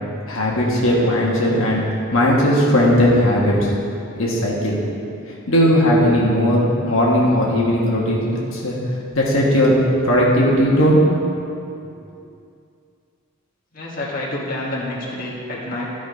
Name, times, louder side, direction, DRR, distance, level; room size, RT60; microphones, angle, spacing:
voice 1, 0.3-1.8 2.1-3.7 4.2-4.8 5.5-8.8 9.1-9.7 10.0-11.2, equal, 70° left, -4 dB, 1.5 m, -17 dB
voice 2, 13.7-15.8, left 1 dB, 40° left, -6 dB, 1.6 m, -28 dB
13.0 x 5.1 x 5.1 m, 2.6 s
head